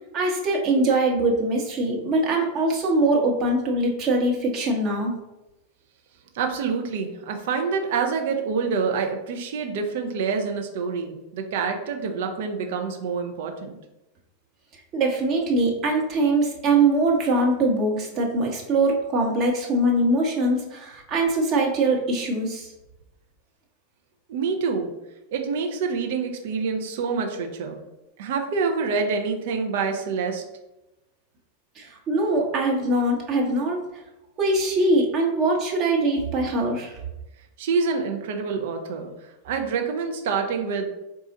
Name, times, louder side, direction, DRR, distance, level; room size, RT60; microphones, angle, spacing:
voice 1, 0.1-5.1 14.9-22.7 31.8-33.8 34.4-37.0, right 2 dB, 35° right, -1 dB, 1.0 m, -22 dB
voice 2, 6.3-13.8 24.3-24.9 25.3-27.8 28.2-30.4 37.6-39.1 39.4-40.9, right 5 dB, 55° right, 3 dB, 0.6 m, -26 dB
4.1 x 2.4 x 3.8 m, 0.96 s
figure-of-eight pair, 90°, 0 cm